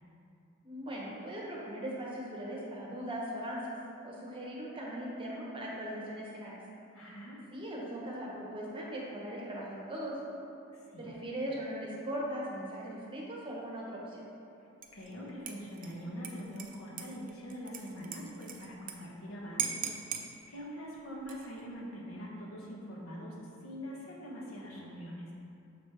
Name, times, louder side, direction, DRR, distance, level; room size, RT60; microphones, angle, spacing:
voice 1, 0.6-3.7 4.0-6.6 7.5-10.2 11.0-14.3, equal, 25° right, -4 dB, 1.0 m, -39 dB
voice 2, 6.9-7.4 10.7-11.1 14.6-25.3, equal, 75° left, -4 dB, 1.2 m, -44 dB
Dishes pots and pans / Liquid, 14.8-15.1 15.5-18.9 19.2-19.3 19.6-20.3 21.1-21.6, right 8 dB, 40° right, 0.5 m, -39 dB
7.1 x 3.1 x 4.7 m, 2.7 s
head